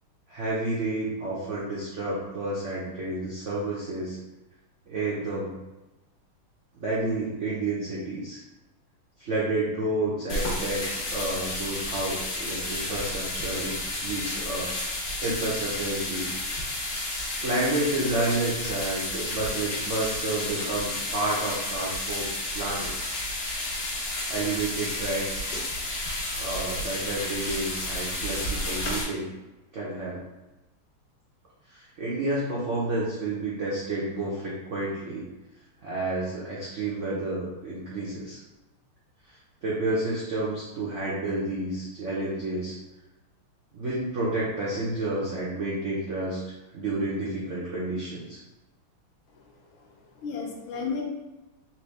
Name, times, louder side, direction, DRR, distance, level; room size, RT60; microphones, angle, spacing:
voice 1, 0.3-4.2 4.9-5.6 6.8-8.4 9.2-14.8 15.2-16.3 17.4-22.9 24.3-25.5 26.3-29.3 29.7-30.2 31.7-35.3 35.8-38.4 39.6-42.8 43.7-46.4 46.7-48.4, right 2 dB, 90° right, -7 dB, 0.6 m, -30 dB
sound 1, 10.3-29.0, left 1 dB, 55° left, 1.5 m, -31 dB
voice 2, 49.3-51.0, left 5 dB, 75° left, -1 dB, 1.5 m, -35 dB
4.3 x 2.6 x 3.2 m, 1.0 s
omnidirectional pair, 2.3 m